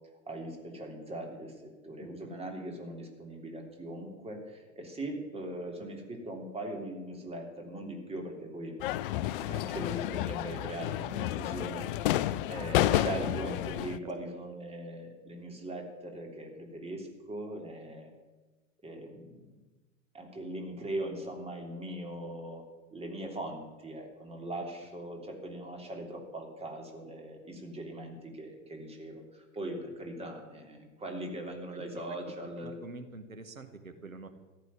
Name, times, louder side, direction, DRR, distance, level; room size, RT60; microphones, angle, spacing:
voice 1, 0.3-8.8 9.5-18.1 18.8-19.4 20.1-22.6 22.9-32.8, right 1 dB, 15° right, 2 dB, 3.1 m, -40 dB
sound 1, 8.8-14.0, left 13 dB, 45° left, 0.5 m, -31 dB
voice 2, 32.6-34.3, right 3 dB, 85° right, 8 dB, 1.2 m, -45 dB
14.5 x 6.8 x 9.7 m, 1.2 s
figure-of-eight pair, 90°, 40 cm